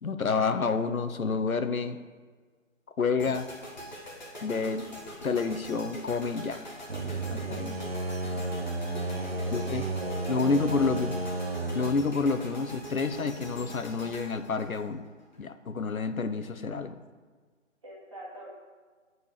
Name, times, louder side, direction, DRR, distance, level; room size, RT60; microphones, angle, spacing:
voice 1, 0.0-2.0 3.0-3.5 4.4-4.8 5.2-6.6 7.3-7.8 9.5-9.8 10.3-11.2 11.7-15.0 15.4-17.0, left 4 dB, 90° left, 9 dB, 1.0 m, -29 dB
sound 1, 3.2-15.4, equal, 35° left, 1.5 m, -44 dB
sound 2, 6.9-11.9, right 2 dB, 45° right, 0.8 m, -32 dB
voice 2, 8.9-9.6 9.9-10.5 17.8-18.5, right 1 dB, 25° right, -7 dB, 2.3 m, -45 dB
8.4 x 4.7 x 6.7 m, 1.5 s
figure-of-eight pair, 175°, 40 cm